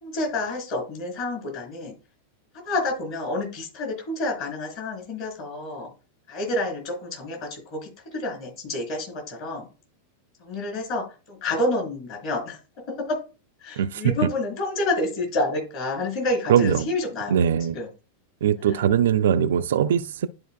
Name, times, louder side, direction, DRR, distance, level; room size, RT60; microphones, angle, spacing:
voice 1, 0.0-1.9 2.6-5.9 6.3-9.7 10.4-13.2 13.6-17.4 17.7-17.9 18.6-18.8, left 2 dB, 45° left, 4.0 m, -29 dB
voice 2, 13.8-14.1 16.5-16.9 17.3-17.8 18.4-20.3, right 9 dB, 60° right, 0.4 m, -21 dB
11.5 x 4.5 x 2.2 m
figure-of-eight pair, 90°, 0 cm